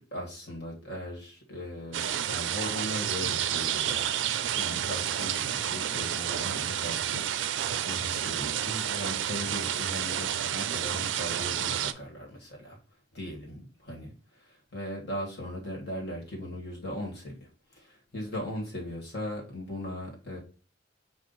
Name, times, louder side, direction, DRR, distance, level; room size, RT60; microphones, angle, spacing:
voice 1, 0.0-7.2 7.9-12.8 13.1-13.6 13.9-20.4, left 1 dB, 55° left, -1 dB, 1.6 m, -38 dB
sound 1, 1.9-11.9, right 10 dB, 70° right, 0.4 m, -30 dB
5.5 x 2.4 x 3.9 m, 0.38 s
head